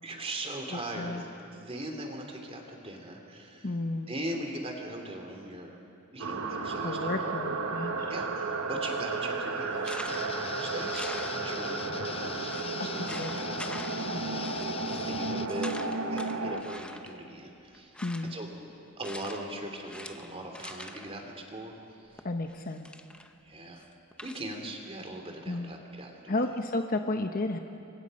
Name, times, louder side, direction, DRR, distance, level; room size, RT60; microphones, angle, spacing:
voice 1, 0.0-3.7 4.1-5.8 6.1-7.3 8.1-12.5 12.8-14.3 15.0-15.8 16.1-17.9 18.3-18.5 19.0-21.7 22.0-22.2 23.4-23.8 24.2-26.5, right 1 dB, 30° right, 3 dB, 2.8 m, -40 dB
voice 2, 0.7-1.2 3.6-4.1 6.8-8.1 13.0-13.3 14.1-14.4 18.0-18.3 22.2-22.9 25.5-25.7 26.3-27.6, left 2 dB, 45° left, 5 dB, 0.9 m, -32 dB
sound 1, 6.2-16.6, right 3 dB, 80° right, 1.5 m, -33 dB
sound 2, 9.8-10.4 10.9-11.8 12.1-12.2 12.5-12.7 13.1-14.1 14.4-15.1 15.5-17.2 17.7-18.4 19.0-19.5 19.8-21.1 22.2-23.3 23.8-24.5, left 1 dB, 5° left, 0.9 m, -45 dB
sound 3, 10.1-15.5, left 6 dB, 25° left, 0.5 m, -41 dB
29.0 x 23.5 x 5.4 m, 2.7 s
head